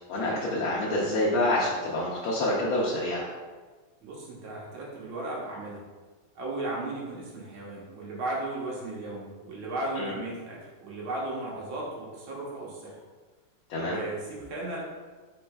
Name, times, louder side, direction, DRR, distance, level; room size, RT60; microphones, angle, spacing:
voice 1, 0.1-3.2 9.9-10.1 13.7-14.0, left 1 dB, 75° left, -6 dB, 1.5 m, -27 dB
voice 2, 4.0-5.8 6.4-13.0 13.8-14.8, right 2 dB, 75° right, -4 dB, 1.8 m, -35 dB
4.7 x 4.3 x 2.2 m, 1.4 s
omnidirectional pair, 2.3 m